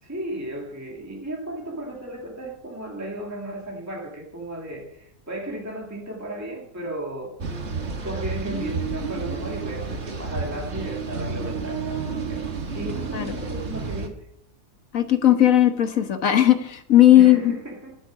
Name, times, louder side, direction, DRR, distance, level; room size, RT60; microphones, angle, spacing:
voice 1, 0.0-7.4 8.0-11.8 12.1-12.5 12.7-14.3 17.1-18.0, right 1 dB, 10° right, -1 dB, 2.0 m, -35 dB
sound 1, 7.4-14.1, right 4 dB, 55° right, 1.7 m, -30 dB
voice 2, 14.9-17.4, left 12 dB, 70° left, 8 dB, 1.6 m, -16 dB
12.5 x 7.9 x 6.1 m, 0.71 s
omnidirectional pair, 1.4 m